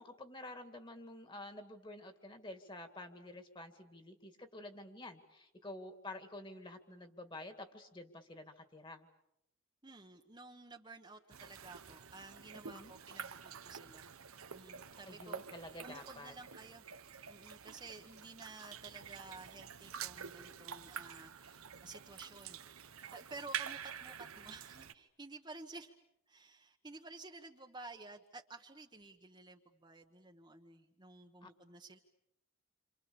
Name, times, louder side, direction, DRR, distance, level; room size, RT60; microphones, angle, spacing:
voice 1, 0.0-9.1 12.5-12.9 15.1-16.3 31.4-31.5, left 2 dB, 20° left, 8 dB, 2.2 m, -50 dB
voice 2, 9.8-14.1 14.5-16.8 17.3-25.9 26.3-32.0, right 3 dB, 20° right, 3 dB, 1.2 m, -53 dB
sound 1, 11.3-24.9, right 7 dB, 85° right, 1.1 m, -48 dB
29.0 x 27.0 x 7.0 m, 0.81 s
head